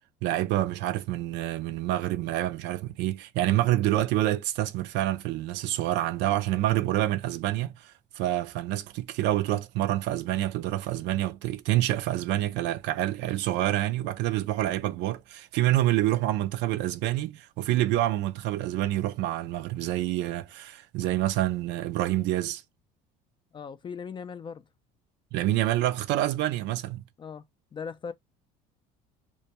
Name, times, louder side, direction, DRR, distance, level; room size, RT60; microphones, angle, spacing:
voice 1, 0.2-22.6 25.3-27.0, right 14 dB, 65° right, 0.4 m, -27 dB
voice 2, 23.5-24.6 27.2-27.4 27.7-28.1, left 6 dB, 25° left, 0.4 m, -38 dB
2.2 x 2.2 x 2.7 m
supercardioid pair, 100°, 20 cm